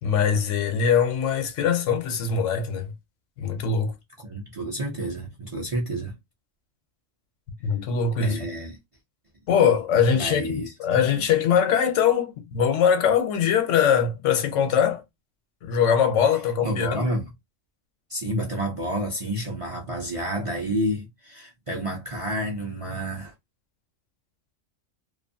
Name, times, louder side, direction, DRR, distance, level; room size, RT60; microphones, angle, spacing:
voice 1, 0.0-2.9 3.4-3.9 7.6-8.4 9.5-15.0 15.6-17.1, left 7 dB, 75° left, 1.0 m, -22 dB
voice 2, 4.2-6.2 8.2-8.8 10.1-10.7 16.6-17.3 18.1-23.3, right 1 dB, 40° right, 0.5 m, -29 dB
2.6 x 2.4 x 2.6 m
omnidirectional pair, 1.3 m